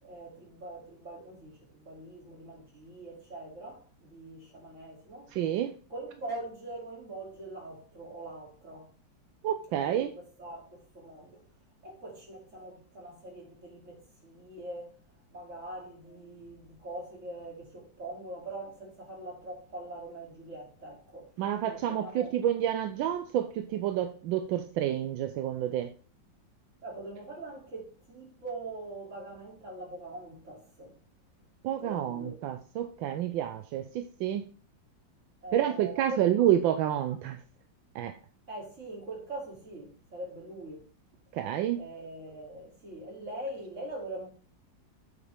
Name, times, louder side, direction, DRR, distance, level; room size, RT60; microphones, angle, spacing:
voice 1, 0.0-5.3 5.9-8.9 9.8-11.4 11.8-15.0 15.3-22.3 26.8-30.9 31.8-32.4 35.4-36.3 38.5-40.9 41.7-44.3, right 2 dB, 40° right, 3.1 m, -43 dB
voice 2, 5.3-5.7 9.4-10.1 21.4-25.9 31.6-34.5 35.5-37.4 37.9-38.2 41.3-41.8, right 11 dB, 85° right, 1.4 m, -29 dB
8.2 x 5.6 x 3.4 m
omnidirectional pair, 2.1 m